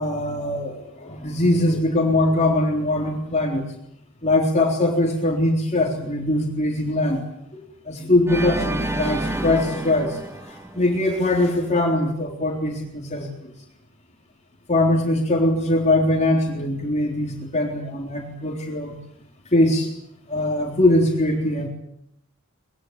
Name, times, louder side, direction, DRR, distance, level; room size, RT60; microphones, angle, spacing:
voice 1, 0.0-3.7 4.2-7.3 7.9-10.2 10.5-13.5 14.7-19.0 19.5-19.9 20.3-21.7, left 1 dB, 30° left, 0 dB, 3.7 m, -21 dB
Organ, 8.3-11.4, right 1 dB, 10° right, 1.4 m, -29 dB
24.0 x 21.5 x 8.8 m, 0.76 s
head